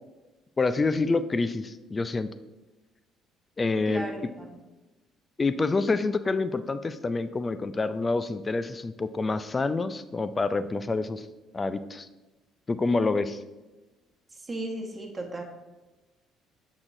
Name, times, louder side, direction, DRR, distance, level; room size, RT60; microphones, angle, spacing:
voice 1, 0.6-2.3 3.6-4.1 5.4-11.3 11.5-12.1 12.7-13.4, left 3 dB, 30° left, 12 dB, 0.4 m, -27 dB
voice 2, 3.9-4.6 14.3-15.4, right 2 dB, 25° right, 1 dB, 1.4 m, -35 dB
6.2 x 6.0 x 2.6 m, 1.1 s
hypercardioid pair, 60°, 0 cm